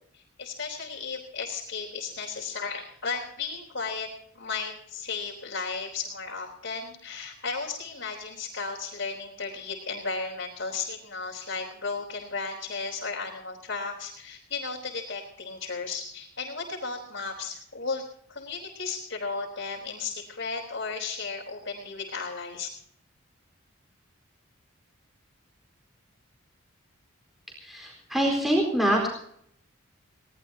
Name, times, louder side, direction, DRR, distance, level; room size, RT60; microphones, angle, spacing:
voice 1, 0.1-4.1 4.3-22.7, left 4 dB, 60° left, -4 dB, 4.1 m, -34 dB
voice 2, 27.6-29.1, right 1 dB, ahead, 0 dB, 4.2 m, -25 dB
22.0 x 19.0 x 2.8 m, 0.67 s
head